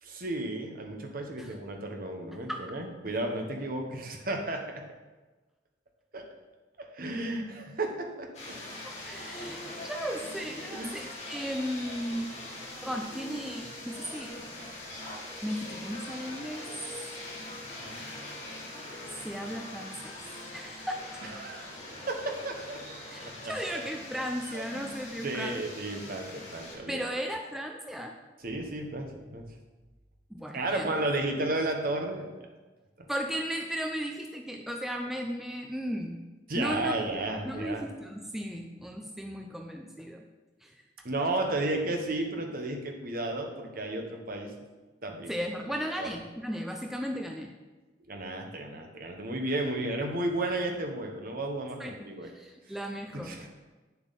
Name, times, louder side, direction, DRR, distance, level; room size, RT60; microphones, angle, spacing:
voice 1, 0.0-4.8 6.1-6.2 6.9-8.5 10.7-11.0 17.8-17.9 21.2-21.7 22.1-22.8 23.4-23.8 24.1-24.9 25.2-27.0 28.4-29.4 30.5-32.3 33.0-33.1 36.5-37.8 41.0-44.5 45.0-45.3 45.7-46.1 48.1-52.3 53.2-53.5, right 2 dB, 50° right, 3 dB, 1.2 m, -33 dB
sound 1, 8.3-26.8, left 1 dB, 40° left, 2.0 m, -42 dB
voice 2, 8.8-12.3 12.8-14.3 15.4-16.7 19.2-20.1 20.5-21.0 21.3-21.4 23.1-25.6 26.9-28.1 30.3-31.0 33.1-36.2 36.5-37.0 37.4-40.2 40.6-40.8 45.3-47.5 51.8-51.9 52.2-53.4, equal, ahead, 2 dB, 0.5 m, -35 dB
8.7 x 7.0 x 4.1 m, 1.2 s
head